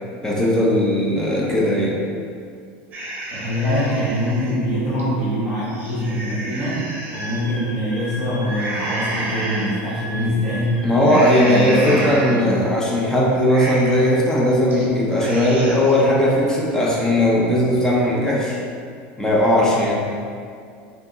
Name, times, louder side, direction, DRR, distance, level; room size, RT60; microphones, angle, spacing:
voice 1, 0.2-2.0 10.8-18.6 19.2-20.1, left 1 dB, 10° left, -5 dB, 0.6 m, -18 dB
sound 1, 2.9-4.5 5.0-5.1 5.6-7.4 8.4-9.7 10.2-10.5 11.0-12.6 12.9-13.0 13.4-14.1 14.5-14.9 15.1-16.0, right 1 dB, 35° right, 0.8 m, -30 dB
voice 2, 3.3-11.1 11.4-12.6, equal, 35° left, -14 dB, 1.3 m, -24 dB
Wind instrument woodwind instrument, 7.1-12.4, equal, 85° left, 1.3 m, -36 dB
3.4 x 2.8 x 2.5 m, 2.3 s
supercardioid pair, 125°, 6 cm